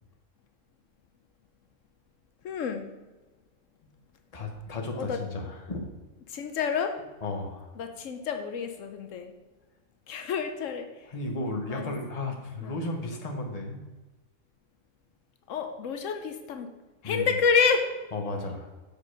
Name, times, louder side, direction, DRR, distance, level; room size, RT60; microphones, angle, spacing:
voice 1, 2.4-2.9 4.9-5.2 6.3-7.0 7.8-9.3 10.1-10.9 11.7-11.9 12.6-12.8 15.5-16.7 17.0-17.9, left 6 dB, 80° left, 6 dB, 1.1 m, -28 dB
voice 2, 4.3-5.8 7.2-7.7 11.1-13.8 17.0-17.3 18.1-18.7, left 2 dB, 30° left, 2 dB, 1.1 m, -34 dB
6.6 x 5.0 x 6.4 m, 1.2 s
omnidirectional pair, 1.3 m